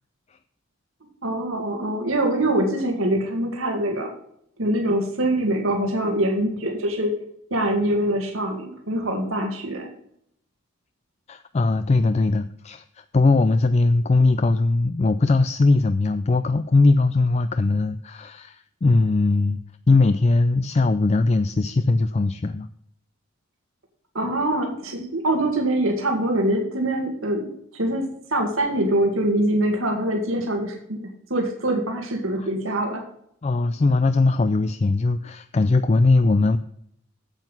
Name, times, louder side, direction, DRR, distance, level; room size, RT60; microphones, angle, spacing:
voice 1, 1.2-4.1 4.6-7.2 7.5-9.9 24.1-27.5 27.7-28.0 28.3-33.0, right 1 dB, 90° right, 2 dB, 2.0 m, -24 dB
voice 2, 11.3-22.7 33.4-36.6, left 3 dB, 30° left, 11 dB, 0.4 m, -20 dB
9.0 x 8.0 x 5.5 m, 0.70 s
head